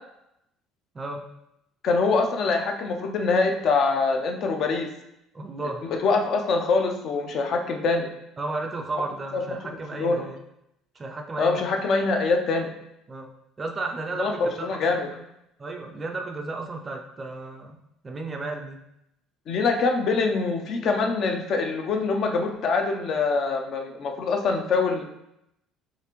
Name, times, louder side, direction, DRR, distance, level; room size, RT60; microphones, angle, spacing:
voice 1, 1.8-4.9 5.8-8.1 9.3-9.4 9.9-10.2 11.4-12.7 14.2-15.1 19.5-25.0, left 4 dB, 40° left, 4 dB, 0.5 m, -24 dB
voice 2, 5.3-5.9 8.4-10.4 10.9-11.6 13.1-13.3 13.6-14.4 14.7-15.0 15.6-17.8 18.0-18.8, right 3 dB, 20° right, 3 dB, 0.4 m, -33 dB
6.6 x 2.5 x 3.0 m, 0.83 s
cardioid pair, 170°, 0 cm